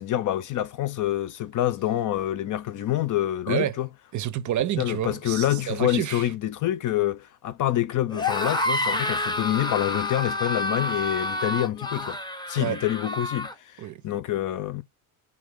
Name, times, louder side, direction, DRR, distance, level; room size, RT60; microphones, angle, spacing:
voice 1, 0.0-3.9 4.8-12.2 12.5-13.5 13.8-14.8, left 13 dB, 50° left, 0.6 m, -26 dB
voice 2, 3.5-3.8 4.1-6.3 12.6-12.8 13.8-14.0, right 12 dB, 45° right, 0.6 m, -29 dB
sound 1, 8.1-13.5, left 2 dB, 10° left, 0.8 m, -29 dB
3.6 x 2.7 x 3.6 m
supercardioid pair, 80°, 41 cm